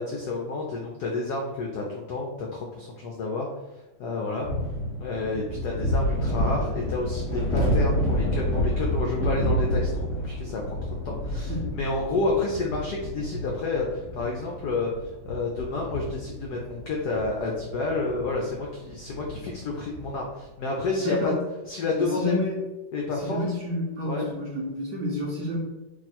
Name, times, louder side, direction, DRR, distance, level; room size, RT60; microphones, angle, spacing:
voice 1, 0.0-4.5 5.0-21.3 21.7-22.3 22.9-23.4 24.1-24.3, left 3 dB, 80° left, -1 dB, 0.8 m, -30 dB
sound 1, 4.4-20.2, equal, 30° right, 0.8 m, -29 dB
voice 2, 11.3-11.7 21.0-21.4 22.0-22.7 23.2-25.6, left 1 dB, 65° right, -3 dB, 1.1 m, -30 dB
3.6 x 2.4 x 4.1 m, 1.1 s
omnidirectional pair, 2.3 m